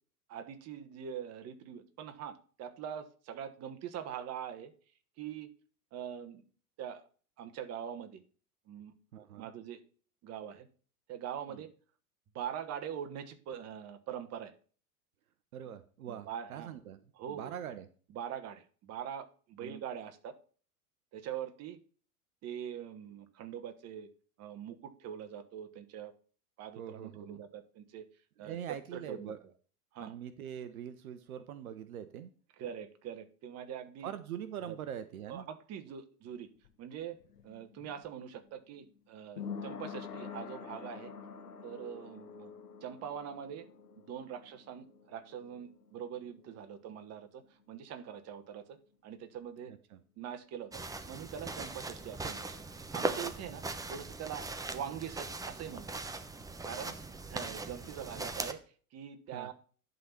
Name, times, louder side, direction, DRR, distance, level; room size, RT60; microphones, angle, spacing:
voice 1, 0.3-4.7 5.2-5.5 5.9-6.4 6.8-7.0 7.4-8.2 8.7-8.9 9.4-9.8 10.2-10.7 11.1-11.7 12.3-14.5 16.1-16.7 17.1-17.5 18.1-20.4 21.1-21.8 22.4-24.1 24.4-26.1 26.6-28.1 28.4-29.3 29.9-30.1 32.6-34.1 34.7-34.8 35.3-36.5 36.8-37.2 37.4-41.1 41.6-42.5 42.8-43.7 43.9-47.4 47.7-49.8 50.2-52.5 52.7-53.6 53.9-54.5 54.7-56.0 56.6-57.0 57.3-58.6 58.9-59.5, right 9 dB, 35° right, 9 dB, 1.3 m, -43 dB
voice 2, 9.1-9.5 11.5-11.6 15.5-17.0 17.3-17.9 19.6-19.8 26.8-27.4 28.4-29.4 30.0-32.3 34.0-35.5 49.9-50.0 59.3-59.5, right 9 dB, 70° right, 12 dB, 0.9 m, -43 dB
sound 1, 36.3-47.8 48.1-48.2, left 6 dB, 85° left, 1.2 m, -48 dB
sound 2, 50.7-58.5, right 3 dB, 10° right, 0.8 m, -40 dB
11.0 x 4.1 x 5.8 m, 0.40 s
hypercardioid pair, 90°, 45 cm